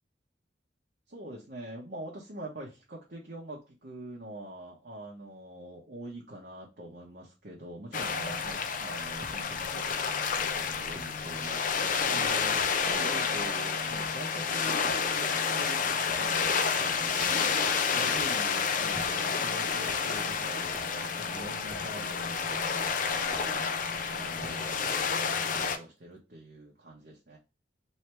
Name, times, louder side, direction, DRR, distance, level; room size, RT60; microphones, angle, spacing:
voice 1, 1.1-11.6 12.1-27.4, right 1 dB, 60° right, -3 dB, 0.9 m, -44 dB
sound 1, 7.9-25.8, left 6 dB, 50° left, 0.5 m, -30 dB
sound 2, 8.0-8.2 9.2-9.4 10.9-11.1 12.6-12.7 13.8-14.4 14.8-15.1 16.0-16.3 17.2-17.6 18.1-18.4 18.9-19.4 19.8-20.1 20.7-21.0 21.7-21.9 23.3-23.5 24.4-24.6 25.5-25.8, equal, 25° right, 0.6 m, -48 dB
3.3 x 2.8 x 4.3 m, 0.27 s
head